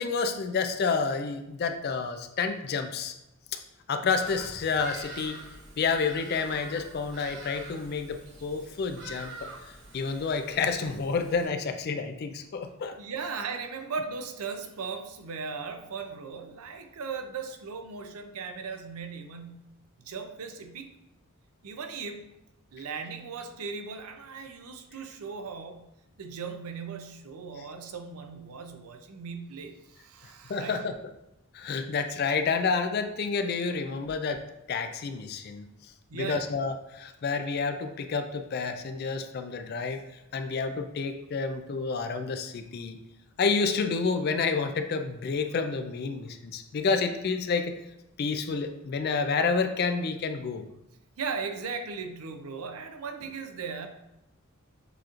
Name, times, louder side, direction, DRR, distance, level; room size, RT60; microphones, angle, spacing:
voice 1, 0.0-3.1 3.9-5.4 5.8-9.3 9.9-12.9 30.5-30.9 31.5-34.4 34.7-35.7 36.1-40.0 40.3-43.0 43.4-47.7 48.2-50.6, left 4 dB, 45° left, 7 dB, 0.3 m, -29 dB
Bird vocalization bird call bird song, 4.2-11.5, right 2 dB, 50° right, 0.9 m, -46 dB
voice 2, 13.0-19.7 20.0-20.9 21.6-22.2 22.7-25.9 26.2-30.9 36.1-36.5 51.2-53.9, right 5 dB, 80° right, 6 dB, 0.5 m, -37 dB
6.8 x 3.0 x 2.4 m, 0.88 s
head